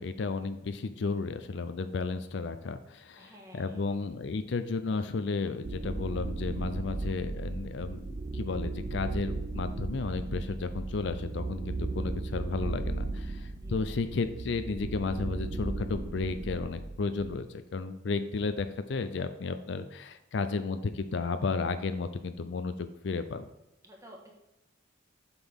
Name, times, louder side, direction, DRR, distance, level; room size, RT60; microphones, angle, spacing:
voice 1, 0.0-23.5, left 4 dB, 60° left, 10 dB, 0.4 m, -33 dB
voice 2, 3.2-4.1 13.6-14.0 23.8-24.3, equal, 15° right, -1 dB, 1.6 m, -53 dB
sound 1, 5.6-17.4, right 3 dB, 35° right, 0.4 m, -36 dB
7.9 x 6.1 x 3.6 m, 0.95 s
head